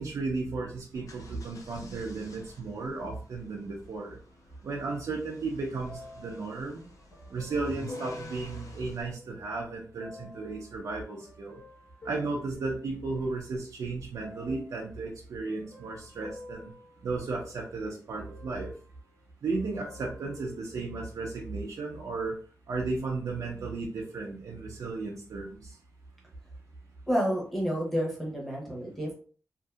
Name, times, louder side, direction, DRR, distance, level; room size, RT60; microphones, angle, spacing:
voice 1, 0.0-4.2 4.6-6.9 7.3-11.6 12.0-16.7 17.0-18.7 19.4-22.4 22.7-25.8, right 3 dB, 70° right, -2 dB, 0.6 m, -34 dB
sound 1, 0.9-9.0, left 1 dB, 70° left, 0.6 m, -49 dB
sound 2, 5.8-9.4 10.0-13.5 14.2-14.8 15.5-17.8 18.2-19.2 19.5-21.6 22.2-22.3, left 2 dB, 40° left, 1.3 m, -50 dB
voice 2, 27.1-29.1, equal, 5° left, -3 dB, 1.0 m, -29 dB
2.7 x 2.5 x 2.3 m, 0.41 s
wide cardioid pair, 150°, 6 cm